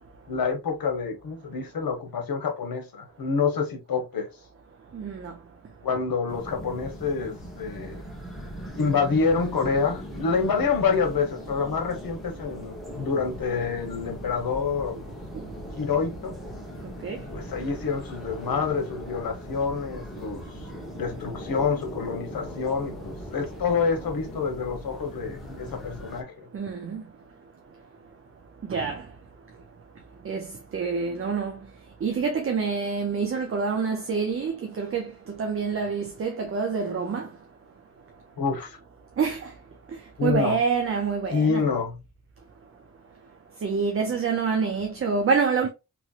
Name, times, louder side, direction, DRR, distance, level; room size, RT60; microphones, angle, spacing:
voice 1, 0.3-4.3 5.8-8.0 8.8-15.0 15.8-16.3 17.1-20.6 21.0-26.5 38.4-38.8 40.2-40.6 41.3-42.0, left 5 dB, 85° left, 1.0 m, -27 dB
voice 2, 4.9-5.4 15.3-15.5 17.0-17.2 26.5-27.0 28.6-29.1 30.2-31.6 32.0-37.3 39.2-39.5 39.9-41.7 43.6-45.7, right 5 dB, 40° right, 0.4 m, -27 dB
sound 1, 6.3-26.2, equal, ahead, 0.9 m, -39 dB
3.0 x 2.8 x 2.3 m
wide cardioid pair, 170°, 34 cm